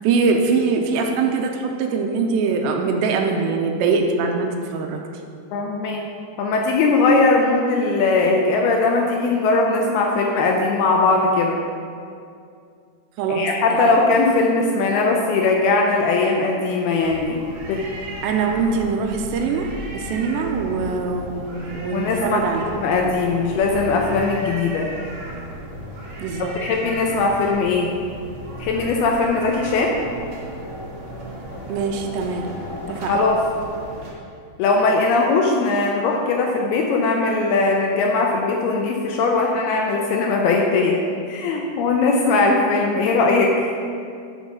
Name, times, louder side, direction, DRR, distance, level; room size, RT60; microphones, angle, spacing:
voice 1, 0.0-5.0 13.2-13.5 13.8-13.9 18.2-22.7 26.2-26.5 31.7-32.5 32.9-33.2, right 4 dB, 85° right, 3 dB, 2.8 m, -22 dB
voice 2, 5.5-6.0 6.4-11.6 13.3-17.4 17.7-17.8 21.9-24.9 26.4-27.9 28.6-30.0 32.9-33.4 34.6-41.0 41.3-43.7, left 3 dB, 80° left, 1 dB, 2.4 m, -20 dB
sound 1, 17.0-34.1, equal, 60° right, 1.5 m, -35 dB
10.5 x 4.8 x 6.2 m, 2.4 s
omnidirectional pair, 5.1 m